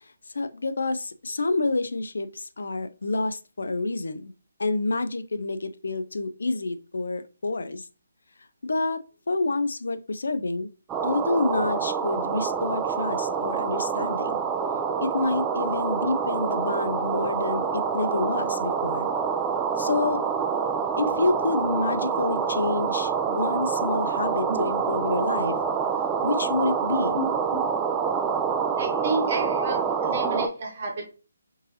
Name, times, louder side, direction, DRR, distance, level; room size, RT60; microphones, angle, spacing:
voice 1, 0.3-4.3 4.6-7.9 8.6-10.7 11.0-14.4 15.0-19.1 19.8-20.2 21.0-25.6 26.2-27.2, left 2 dB, 80° left, 0.4 m, -28 dB
sound 1, 10.9-30.5, right 6 dB, 15° right, 0.3 m, -27 dB
voice 2, 27.1-27.6 28.8-31.1, right 2 dB, 45° right, 1.3 m, -31 dB
3.8 x 2.6 x 2.7 m
hypercardioid pair, 160°, 0 cm